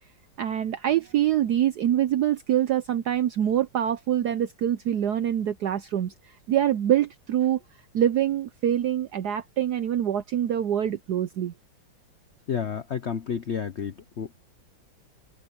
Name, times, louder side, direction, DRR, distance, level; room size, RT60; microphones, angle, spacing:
voice 1, 0.4-6.1 6.5-7.6 7.9-11.5, right 11 dB, 70° right, 1.0 m, -25 dB
voice 2, 12.5-14.3, left 7 dB, 55° left, 0.7 m, -31 dB
open air
omnidirectional pair, 2.3 m